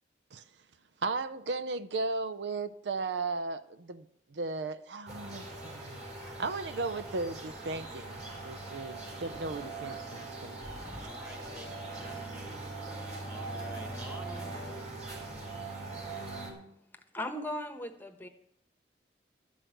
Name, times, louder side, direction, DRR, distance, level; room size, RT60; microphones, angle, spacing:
voice 1, 1.0-4.1 4.3-8.2 8.4-10.6, right 3 dB, 75° right, 0.6 m, -36 dB
sound 1, 5.1-16.5, right 2 dB, 40° right, 4.3 m, -41 dB
voice 2, 10.8-12.6 12.9-14.6, equal, 10° right, 1.6 m, -50 dB
voice 3, 17.1-18.3, left 1 dB, 10° left, 1.1 m, -37 dB
12.5 x 6.2 x 9.2 m
head